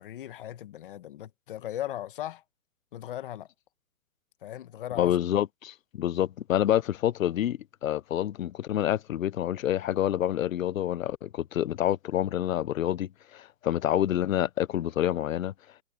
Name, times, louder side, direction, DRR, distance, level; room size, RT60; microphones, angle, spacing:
voice 1, 0.0-2.4 2.9-3.5 4.4-5.2, left 12 dB, 35° left, 1.4 m, -38 dB
voice 2, 5.0-15.5, left 11 dB, 55° left, 0.7 m, -27 dB
hypercardioid pair, 170°, 47 cm